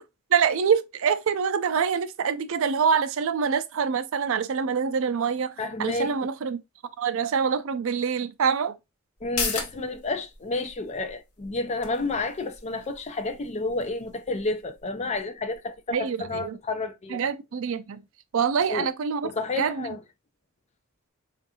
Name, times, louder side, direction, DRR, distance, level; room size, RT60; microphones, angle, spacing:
voice 1, 0.3-5.5 5.8-6.6 7.0-8.7 15.9-16.6 17.1-18.0 18.3-19.3 19.6-20.0, right 6 dB, 65° right, 0.4 m, -25 dB
voice 2, 5.6-6.2 9.2-17.3 18.7-18.9 19.2-20.0, left 2 dB, 30° left, 0.4 m, -30 dB
sound 1, 9.2-16.3 16.6-16.7, left 5 dB, 80° left, 0.9 m, -38 dB
4.4 x 2.5 x 2.8 m
head